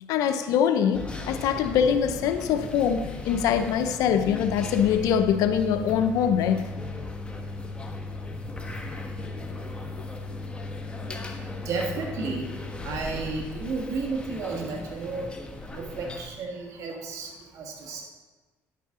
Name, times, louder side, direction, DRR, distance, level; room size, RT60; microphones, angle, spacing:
voice 1, 0.1-6.7, left 8 dB, 80° left, 9 dB, 0.6 m, -23 dB
sound 1, 0.9-16.3, left 2 dB, 20° left, 1.2 m, -37 dB
voice 2, 11.6-15.4 15.7-18.0, right 4 dB, 65° right, -1 dB, 1.6 m, -33 dB
10.5 x 8.3 x 3.7 m, 1.3 s
cardioid pair, 90°, 6 cm